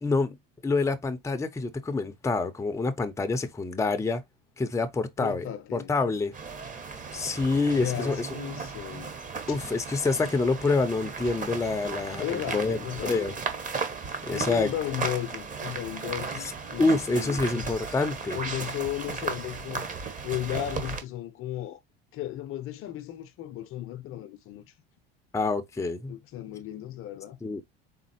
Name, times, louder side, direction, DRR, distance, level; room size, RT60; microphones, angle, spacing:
voice 1, 0.0-0.4 0.6-4.2 4.6-5.5 5.7-6.3 7.1-8.3 9.5-13.3 14.2-14.7 16.4-16.5 16.8-18.4 25.3-26.1 27.4-27.6, left 3 dB, 10° left, 0.6 m, -27 dB
voice 2, 5.2-6.0 7.5-9.1 9.5-9.6 12.2-13.4 14.3-17.7 18.3-19.9 20.2-21.8 22.1-24.6 26.1-27.4, left 12 dB, 45° left, 0.6 m, -35 dB
sound 1, 6.3-21.0, right 5 dB, 25° right, 1.2 m, -35 dB
4.1 x 3.6 x 2.7 m
hypercardioid pair, 85°, 30 cm